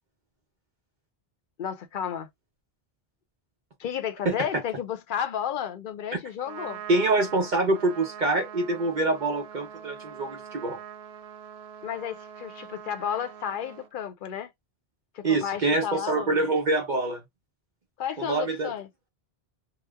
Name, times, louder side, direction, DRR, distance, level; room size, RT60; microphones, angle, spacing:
voice 1, 1.6-2.3 3.8-6.8 11.8-14.5 15.1-16.4 18.0-18.9, left 9 dB, 60° left, 0.7 m, -32 dB
Trumpet, 6.3-13.9, right 9 dB, 90° right, 0.9 m, -43 dB
voice 2, 6.9-10.8 15.2-17.2 18.2-18.7, right 2 dB, 50° right, 0.8 m, -25 dB
2.9 x 2.0 x 3.4 m
omnidirectional pair, 1.0 m